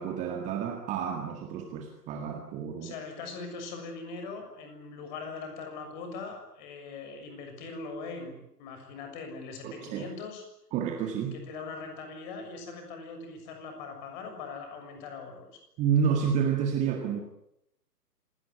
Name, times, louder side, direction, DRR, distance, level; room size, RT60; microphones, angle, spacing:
voice 1, 0.0-2.9 9.6-10.1 10.7-11.4 15.8-17.2, right 7 dB, 15° right, 4 dB, 1.8 m, -29 dB
voice 2, 2.8-10.4 11.3-15.6, left 4 dB, 30° left, 5 dB, 6.8 m, -41 dB
27.0 x 18.5 x 9.8 m, 0.78 s
figure-of-eight pair, 130°, 49 cm